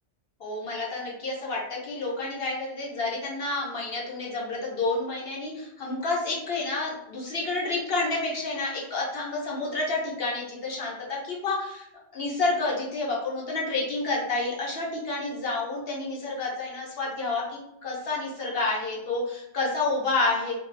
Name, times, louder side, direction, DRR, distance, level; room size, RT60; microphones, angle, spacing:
voice 1, 0.4-11.9 12.1-20.5, left 3 dB, 60° left, -3 dB, 0.9 m, -29 dB
2.6 x 2.2 x 3.1 m, 0.81 s
omnidirectional pair, 1.2 m